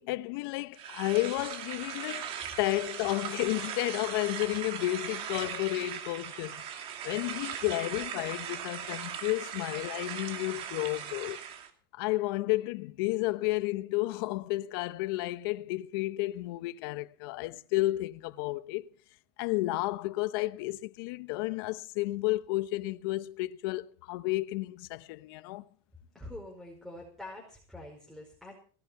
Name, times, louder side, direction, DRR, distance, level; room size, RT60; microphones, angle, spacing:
voice 1, 0.0-2.3 2.6-6.6 7.0-11.4 11.9-18.8 19.4-25.6, left 19 dB, 75° left, 0.9 m, -32 dB
sound 1, 0.7-11.7, right 9 dB, 50° right, 2.6 m, -39 dB
voice 2, 26.1-28.6, left 1 dB, ahead, 4.9 m, -45 dB
18.0 x 11.5 x 5.8 m
supercardioid pair, 130°, 12 cm